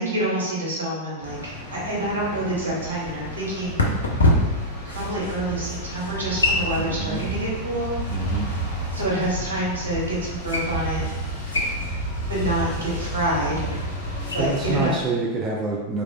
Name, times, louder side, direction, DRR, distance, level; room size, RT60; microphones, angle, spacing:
voice 1, 0.0-3.7 4.8-8.0 8.9-11.1 12.3-13.5 14.3-14.9, right 1 dB, 75° right, -5 dB, 1.0 m, -27 dB
sound 1, 1.2-14.9, right 1 dB, 55° left, 0.9 m, -32 dB
sound 2, 2.0-14.6, left 1 dB, 75° left, 0.4 m, -29 dB
voice 2, 6.7-7.4 8.1-8.5 14.4-16.0, right 3 dB, 25° right, -3 dB, 0.4 m, -27 dB
3.0 x 2.4 x 2.4 m, 1.2 s
figure-of-eight pair, 90°, 0 cm